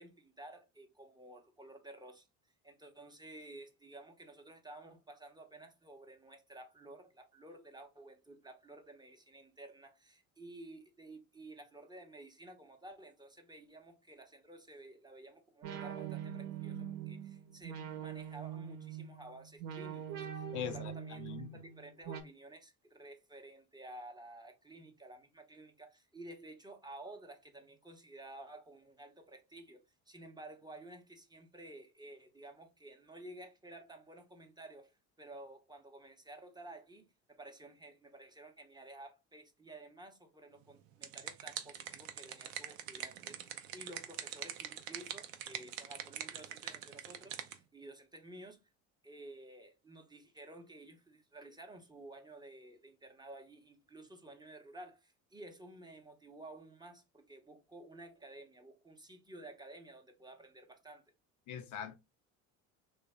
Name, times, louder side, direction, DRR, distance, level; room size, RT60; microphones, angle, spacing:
voice 1, 0.0-2.3 2.6-34.9 35.2-48.6 49.0-61.0, right 2 dB, 10° right, 0.7 m, -53 dB
sound 1, 15.6-22.2, right 9 dB, 60° right, 0.8 m, -43 dB
voice 2, 20.5-20.9 21.2-21.5 61.5-61.9, left 8 dB, 50° left, 0.5 m, -41 dB
sound 2, 40.7-47.6, right 10 dB, 90° right, 0.5 m, -44 dB
3.1 x 2.0 x 3.4 m
hypercardioid pair, 75°, 38 cm